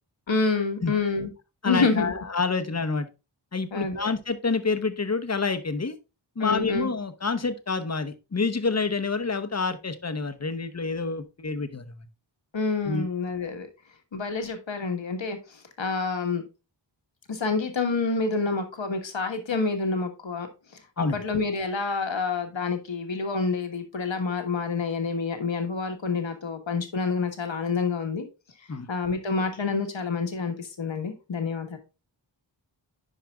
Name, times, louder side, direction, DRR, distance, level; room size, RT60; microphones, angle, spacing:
voice 1, 0.3-1.3 1.7-2.1 3.7-4.1 6.4-6.9 12.5-13.7 14.1-15.4 15.8-16.4 17.3-20.5 21.0-28.2 28.9-31.8, left 4 dB, 75° left, 5 dB, 1.3 m, -28 dB
voice 2, 1.6-3.1 3.5-6.0 6.4-12.1 12.9-13.1 21.0-21.2 28.7-28.9, left 4 dB, 35° left, 8 dB, 0.8 m, -28 dB
10.5 x 4.9 x 2.3 m, 0.28 s
wide cardioid pair, 60°, 45 cm